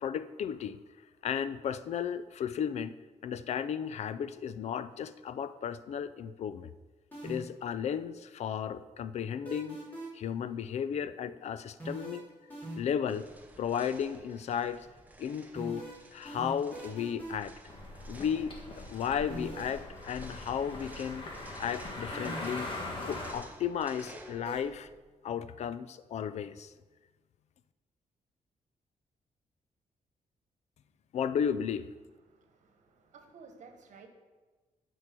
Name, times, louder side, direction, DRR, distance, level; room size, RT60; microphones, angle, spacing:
voice 1, 0.0-0.8 1.2-2.9 3.2-6.7 7.2-9.8 10.1-12.2 12.8-13.3 13.6-14.9 15.2-15.8 16.1-17.6 18.1-21.3 21.6-22.7 23.1-24.9 25.2-26.7 31.1-31.9, left 8 dB, 60° left, 14 dB, 0.4 m, -34 dB
sound 1, 7.1-7.6 9.4-10.3 11.8-13.0 15.5-17.5 19.3-19.8 22.1-22.6 24.4-24.6, right 2 dB, 15° left, 3.4 m, -42 dB
sound 2, 13.1-25.0, right 2 dB, 10° right, 0.9 m, -54 dB
sound 3, 17.7-23.3, left 2 dB, 40° left, 1.7 m, -41 dB
voice 2, 32.2-34.1, right 5 dB, 70° right, 5 dB, 1.3 m, -54 dB
11.0 x 4.6 x 6.0 m, 1.3 s
wide cardioid pair, 155°, 13 cm